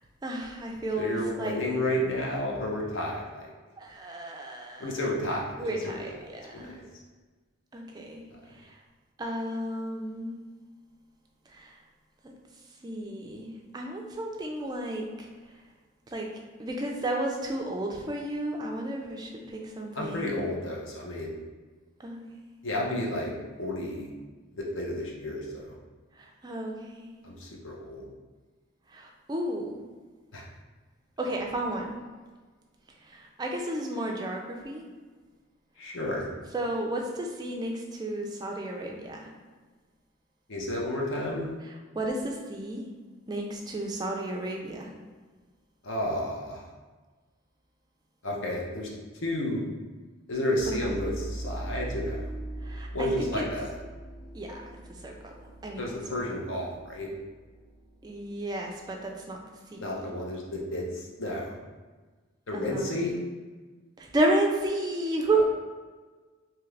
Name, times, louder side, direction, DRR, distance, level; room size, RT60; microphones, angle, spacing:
voice 1, 0.2-2.0 3.8-5.0 5.6-6.7 7.7-8.2 8.5-8.7 9.2-10.4 11.5-11.8 12.2-12.3 12.8-15.3 16.1-16.3 16.6-20.4 22.0-22.2 26.2-27.1 28.9-29.8 31.2-32.0 33.0-34.8 36.5-39.3 41.9-42.9 43.3-44.9 50.7-51.0 52.6-53.1 53.4-53.5 54.3-54.8 55.0-55.3 55.6-56.2 58.0-59.4 59.7-60.1 62.5-63.0 64.0-65.4, right 1 dB, 20° right, 0 dB, 0.3 m, -32 dB
voice 2, 1.0-3.4 4.8-6.0 6.5-6.7 19.9-21.4 22.6-24.1 24.6-25.8 27.2-28.1 30.3-30.4 35.8-36.3 40.5-41.5 45.8-46.7 48.2-48.9 49.2-49.6 50.3-52.2 52.9-53.8 55.8-57.1 59.8-61.6 62.5-63.2, left 1 dB, 65° left, -2 dB, 0.6 m, -31 dB
sound 1, 50.6-59.3, right 1 dB, 15° left, 0.7 m, -41 dB
2.8 x 2.4 x 3.2 m, 1.4 s
head